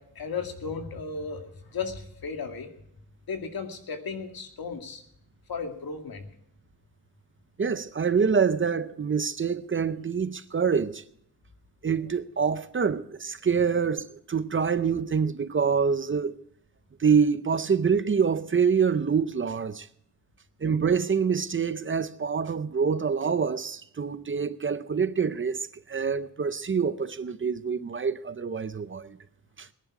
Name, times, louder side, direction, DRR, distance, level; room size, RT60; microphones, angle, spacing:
voice 1, 0.0-2.7 3.3-5.0 5.5-6.3, left 5 dB, 80° left, 2.2 m, -35 dB
voice 2, 7.6-11.0 11.8-16.4 17.0-19.9 20.6-29.2 29.6-29.7, right 6 dB, 35° right, 0.6 m, -26 dB
20.0 x 11.0 x 4.8 m
wide cardioid pair, 175°, 36 cm